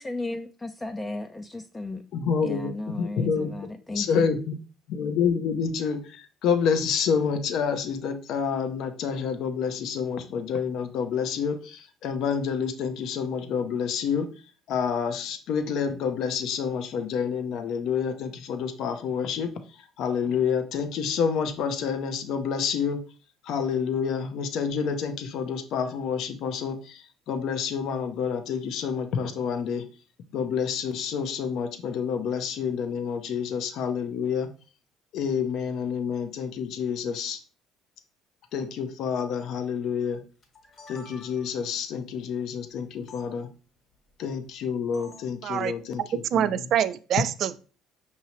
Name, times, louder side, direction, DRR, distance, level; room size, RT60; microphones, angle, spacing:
voice 1, 0.0-2.0 2.4-4.3, left 2 dB, 15° left, 0.3 m, -34 dB
voice 2, 2.1-3.5 3.9-4.6 4.9-14.3 14.7-19.5 20.0-23.0 23.4-29.8 30.3-34.5 35.1-37.4 38.5-40.2 40.9-43.5 44.2-46.5, left 6 dB, 65° left, 0.6 m, -28 dB
sound 1, 40.4-41.7 43.1-43.2 44.9-45.3, left 2 dB, 45° left, 1.4 m, -48 dB
voice 3, 45.4-45.7 46.0-47.6, right 10 dB, 60° right, 0.3 m, -26 dB
5.6 x 2.8 x 2.9 m
supercardioid pair, 95°, 0 cm